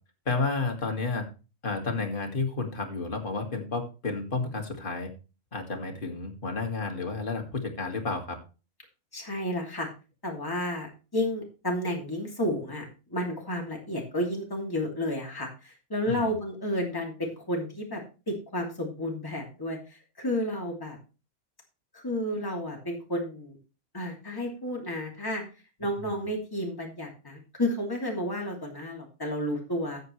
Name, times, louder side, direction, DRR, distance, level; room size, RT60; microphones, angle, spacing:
voice 1, 0.3-1.2 1.6-5.1 5.5-8.4 16.1-16.3 26.0-26.2, left 3 dB, 35° left, 3 dB, 2.2 m, -31 dB
voice 2, 9.1-9.9 10.2-21.0 21.9-23.6 23.9-25.4 25.8-30.0, left 1 dB, 15° left, 0 dB, 2.9 m, -32 dB
13.5 x 8.3 x 3.3 m, 0.32 s
omnidirectional pair, 1.5 m